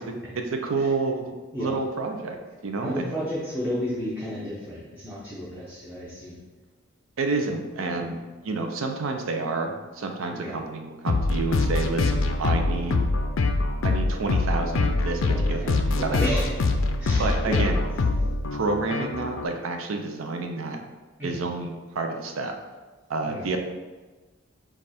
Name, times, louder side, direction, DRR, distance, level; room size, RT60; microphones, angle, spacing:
voice 1, 0.0-3.1 7.2-8.2 8.4-13.0 13.8-15.2 15.5-16.3 17.2-17.8 18.5-20.8 21.2-22.5 23.1-23.6, right 3 dB, 75° right, 4 dB, 0.5 m, -29 dB
voice 2, 2.8-6.4 7.9-8.2 10.3-10.7 15.3-17.8 21.2-21.5 23.2-23.5, equal, 10° right, -9 dB, 0.8 m, -33 dB
sound 1, 11.1-19.5, left 3 dB, 70° left, 0.4 m, -24 dB
5.2 x 2.4 x 4.2 m, 1.3 s
head